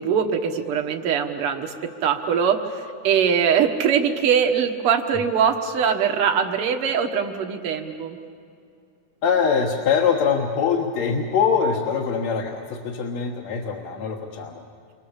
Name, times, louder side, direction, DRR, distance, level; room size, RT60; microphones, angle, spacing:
voice 1, 0.0-8.2, right 7 dB, 55° right, 4 dB, 2.2 m, -22 dB
voice 2, 9.2-14.6, left 6 dB, 70° left, 1 dB, 2.5 m, -23 dB
29.0 x 24.5 x 7.3 m, 2.4 s
omnidirectional pair, 3.4 m